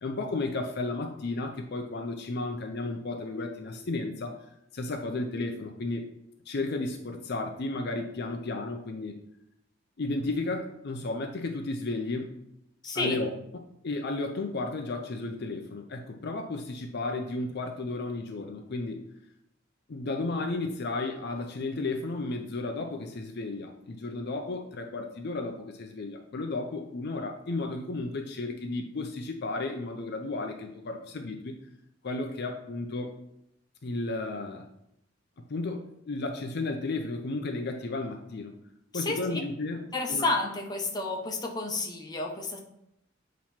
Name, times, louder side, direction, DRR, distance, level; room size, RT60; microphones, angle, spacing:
voice 1, 0.0-4.5 4.7-6.0 6.5-9.2 10.0-12.3 12.9-13.3 13.8-19.0 19.9-31.6 32.0-33.1 33.8-34.7 35.5-38.5 38.9-40.2, left 2 dB, 55° left, 3 dB, 0.6 m, -33 dB
voice 2, 12.8-13.2 38.9-39.4 39.9-42.6, left 3 dB, 20° left, 0 dB, 0.9 m, -30 dB
7.2 x 3.1 x 4.3 m, 0.79 s
head